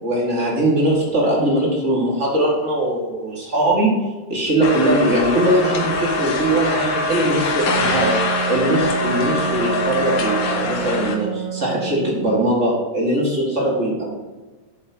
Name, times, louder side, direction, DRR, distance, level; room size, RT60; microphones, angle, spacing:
voice 1, 0.0-3.9 4.3-8.2 8.5-14.1, right 1 dB, 35° right, -4 dB, 1.1 m, -20 dB
sound 1, 4.6-11.2, left 3 dB, 75° left, 1.6 m, -23 dB
Wind instrument woodwind instrument, 7.7-12.3, right 9 dB, 85° right, 1.6 m, -28 dB
12.5 x 7.5 x 3.0 m, 1.3 s
omnidirectional pair, 4.8 m